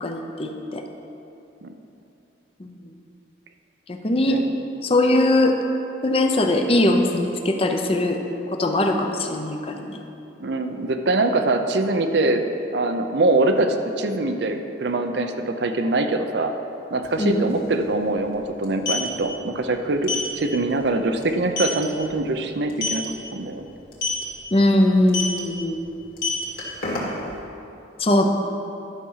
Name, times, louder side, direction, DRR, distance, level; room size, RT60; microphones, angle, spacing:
voice 1, 0.0-0.8 2.6-2.8 3.9-4.4 4.8-5.6 6.0-8.2 8.5-10.0 17.2-17.4 24.5-25.8 28.0-28.3, left 1 dB, 30° left, 4 dB, 0.6 m, -21 dB
voice 2, 10.4-12.4 12.7-16.5 16.9-20.1 20.4-23.0 23.3-23.7, right 2 dB, 60° right, 6 dB, 0.6 m, -23 dB
sound 1, 17.0-17.1 17.4-17.6 18.6-19.1 20.0-20.3 20.7-20.9 21.2-21.3 21.6-21.8 22.7-23.1 23.9-24.2 25.1-25.4 26.0-27.3, left 4 dB, 50° left, 2.0 m, -26 dB
11.0 x 6.0 x 5.6 m, 2.8 s
head